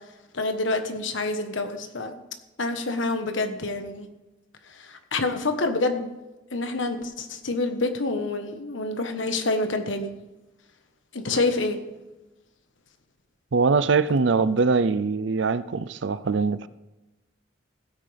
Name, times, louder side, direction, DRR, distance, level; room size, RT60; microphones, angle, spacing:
voice 1, 0.3-2.1 2.6-4.1 4.8-6.1 6.5-10.1 11.1-11.8, left 2 dB, 75° left, 7 dB, 1.3 m, -27 dB
voice 2, 13.5-16.7, right 4 dB, 70° right, 15 dB, 0.5 m, -22 dB
16.0 x 9.2 x 3.5 m, 1.1 s
head